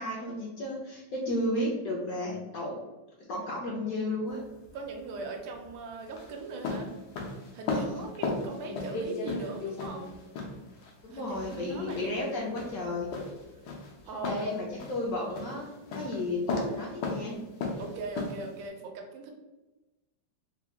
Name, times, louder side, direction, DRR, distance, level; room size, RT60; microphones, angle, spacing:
voice 1, 0.0-2.7 3.3-4.4 7.7-8.0 11.0-13.1 14.2-15.7 15.9-17.4, left 1 dB, 70° left, -2 dB, 0.8 m, -33 dB
sound 1, 4.3-18.7, left 3 dB, 90° left, 1.4 m, -37 dB
voice 2, 4.7-6.9 7.4-10.1 11.1-12.2 14.1-14.4 17.8-19.3, right 3 dB, 80° right, 3 dB, 1.3 m, -40 dB
3.6 x 2.2 x 3.4 m, 1.1 s
omnidirectional pair, 2.0 m